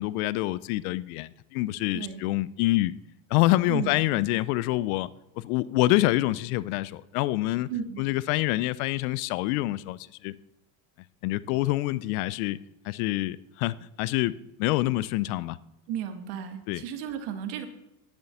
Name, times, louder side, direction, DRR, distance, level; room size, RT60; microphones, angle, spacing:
voice 1, 0.0-2.9 3.3-5.1 5.4-7.7 8.0-10.4 11.2-12.6 12.8-15.6 16.7-16.8, left 17 dB, 75° left, 0.6 m, -26 dB
voice 2, 1.9-2.2 3.7-4.0 7.7-8.1 15.9-17.7, right 8 dB, 65° right, 1.8 m, -34 dB
10.5 x 7.1 x 7.1 m
supercardioid pair, 90°, 43 cm